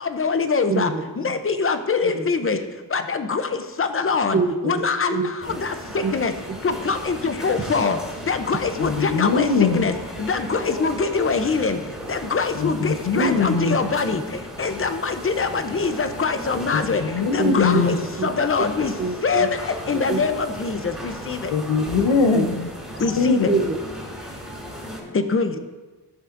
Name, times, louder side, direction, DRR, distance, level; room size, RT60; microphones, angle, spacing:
voice 1, 0.0-0.9 1.2-2.6 2.9-3.4 3.8-4.4 4.6-5.2 5.6-6.3 6.6-8.0 8.3-9.9 10.2-11.8 12.1-14.2 14.6-17.0 17.3-18.9 19.2-19.5 19.9-21.4 23.0-23.5 25.3-25.5, left 5 dB, 30° left, 9 dB, 0.6 m, -23 dB
voice 2, 0.7-1.4 2.0-2.5 4.3-4.8 5.1-5.6 6.0-6.1 6.5-6.6 13.2-13.6 14.0-14.1 15.4-15.6 17.4-17.8 18.2-18.7 19.0-19.5 19.9-20.4 22.3-22.4 22.9-23.1 23.5-23.7, right 4 dB, 30° right, 5 dB, 0.8 m, -27 dB
sound 1, 5.4-25.0, equal, ahead, 2.7 m, -36 dB
voice 3, 8.8-9.9 12.5-13.8 16.7-18.1 21.5-22.7 23.2-23.6, left 4 dB, 85° left, 6 dB, 0.9 m, -21 dB
15.0 x 7.2 x 2.6 m, 1.2 s
wide cardioid pair, 145°, 42 cm